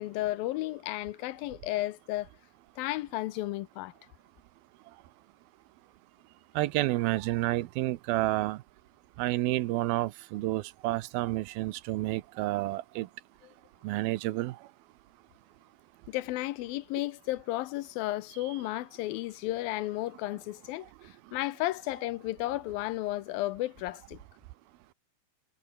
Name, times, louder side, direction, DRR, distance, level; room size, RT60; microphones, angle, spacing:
voice 1, 0.0-2.3 2.8-3.9 16.1-24.2, left 16 dB, 75° left, 2.4 m, -33 dB
voice 2, 6.6-8.6 9.2-13.1 13.8-14.6, right 17 dB, 80° right, 2.6 m, -30 dB
omnidirectional pair, 4.4 m